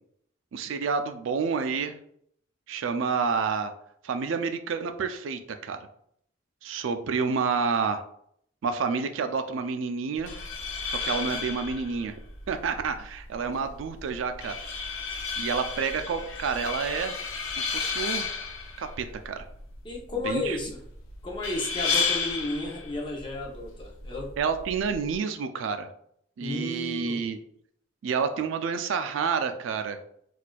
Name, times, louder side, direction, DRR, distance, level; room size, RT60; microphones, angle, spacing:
voice 1, 0.5-2.0 2.7-3.7 4.0-5.9 6.6-8.0 8.6-10.3 10.9-12.1 12.5-14.6 15.4-17.2 17.6-18.3 18.8-19.4 20.2-20.6 24.4-25.9 26.4-27.4 28.0-30.0, right 5 dB, 80° right, 8 dB, 0.4 m, -29 dB
sound 1, 10.1-25.1, left 5 dB, 90° left, 0.5 m, -33 dB
voice 2, 19.8-20.8 21.2-24.3 26.4-27.3, left 2 dB, 25° left, -1 dB, 0.6 m, -33 dB
4.1 x 2.4 x 2.2 m, 0.68 s
head